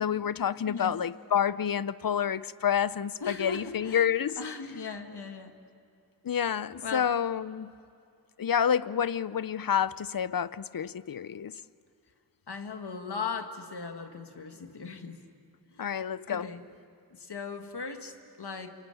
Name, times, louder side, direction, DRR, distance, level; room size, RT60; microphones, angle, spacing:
voice 1, 0.0-4.4 6.2-7.7 8.4-11.6 15.8-16.5, left 8 dB, 60° left, 0.7 m, -29 dB
voice 2, 3.2-4.1 4.4-5.6 6.8-7.1 12.5-15.2 15.7-15.9 16.3-16.6 17.1-18.7, left 5 dB, 85° left, 1.8 m, -38 dB
28.5 x 22.5 x 9.2 m
wide cardioid pair, 60°, 39 cm